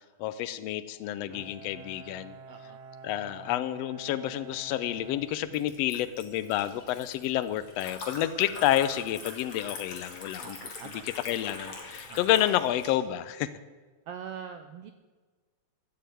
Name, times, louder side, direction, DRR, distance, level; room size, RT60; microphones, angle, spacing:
voice 1, 0.2-2.3 3.0-10.6 11.0-13.5, left 12 dB, 80° left, 14 dB, 1.5 m, -29 dB
Bowed string instrument, 1.3-6.1, right 5 dB, 60° right, 2.1 m, -49 dB
voice 2, 2.5-2.8 10.4-11.1 12.1-12.2 14.1-14.9, right 7 dB, 85° right, 8 dB, 1.3 m, -43 dB
Liquid, 4.5-12.9, left 3 dB, 45° left, 2.9 m, -44 dB
14.0 x 8.0 x 9.3 m, 1.4 s
omnidirectional pair, 3.6 m